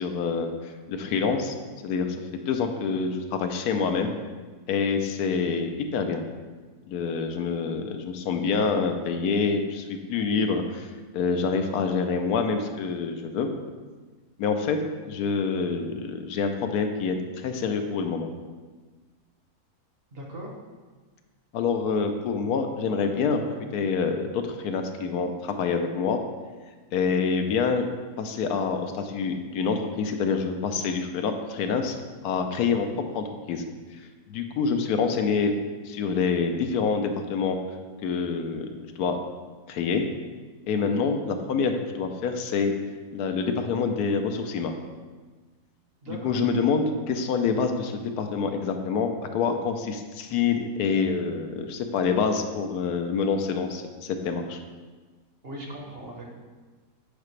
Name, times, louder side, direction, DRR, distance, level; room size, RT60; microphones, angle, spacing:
voice 1, 0.0-1.5 1.8-2.2 2.5-4.1 4.7-6.2 6.9-13.5 14.4-14.8 15.1-18.3 21.5-23.4 23.7-26.2 26.9-27.8 28.2-32.0 32.2-32.9 33.1-33.6 34.0-35.5 35.8-37.6 38.0-39.2 39.7-40.1 40.7-42.7 43.1-44.7 46.2-54.6, left 5 dB, 80° left, 6 dB, 1.1 m, -26 dB
voice 2, 20.1-20.5 40.9-41.2 46.0-46.4 55.4-56.3, right 1 dB, 45° right, -1 dB, 1.0 m, -39 dB
8.4 x 4.9 x 3.2 m, 1.4 s
omnidirectional pair, 1.7 m